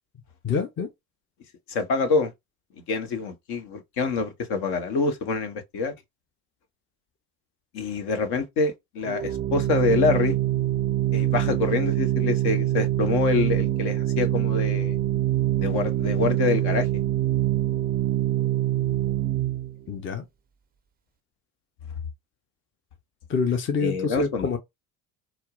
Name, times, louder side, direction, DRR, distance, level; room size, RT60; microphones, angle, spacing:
voice 1, 0.4-0.9 19.9-20.2 23.3-24.6, left 5 dB, 30° left, 0.6 m, -26 dB
voice 2, 1.7-2.3 2.9-5.9 7.7-10.4 11.1-15.0 15.6-16.9 23.8-24.5, left 4 dB, 65° left, 1.0 m, -26 dB
Organ, 9.0-19.8, right 14 dB, 25° right, 0.4 m, -24 dB
4.2 x 2.0 x 2.3 m
hypercardioid pair, 65°, 43 cm